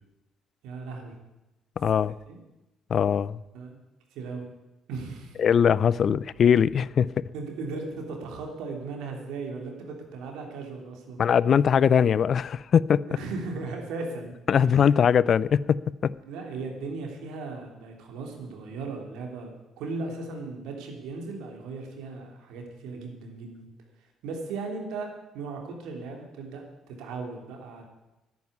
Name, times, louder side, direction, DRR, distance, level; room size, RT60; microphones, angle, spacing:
voice 1, 0.6-1.1 2.3-2.4 3.5-3.8 4.1-4.4 4.9-5.4 7.3-11.2 13.1-14.3 14.6-14.9 16.2-23.7 24.2-25.1 25.3-26.6 26.9-27.8, right 3 dB, 80° right, 2 dB, 3.1 m, -37 dB
voice 2, 1.8-2.1 2.9-3.4 5.4-7.1 11.2-13.0 14.5-16.1, left 7 dB, 55° left, 20 dB, 0.5 m, -21 dB
11.0 x 9.2 x 9.6 m, 0.99 s
supercardioid pair, 60°, 0 cm